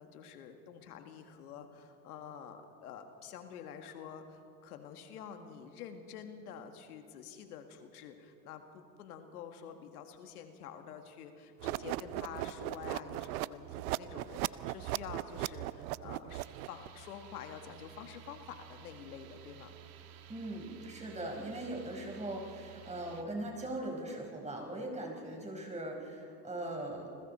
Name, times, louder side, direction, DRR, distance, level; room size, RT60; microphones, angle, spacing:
voice 1, 0.0-19.7, left 8 dB, 90° left, 6 dB, 1.9 m, -48 dB
sound 1, 11.6-16.9, right 16 dB, 80° right, 0.7 m, -38 dB
sound 2, 16.3-23.2, right 9 dB, 55° right, 2.3 m, -54 dB
voice 2, 20.3-27.1, right 1 dB, 15° right, 1 dB, 4.7 m, -40 dB
29.0 x 21.0 x 4.3 m, 2.7 s
supercardioid pair, 100°, 44 cm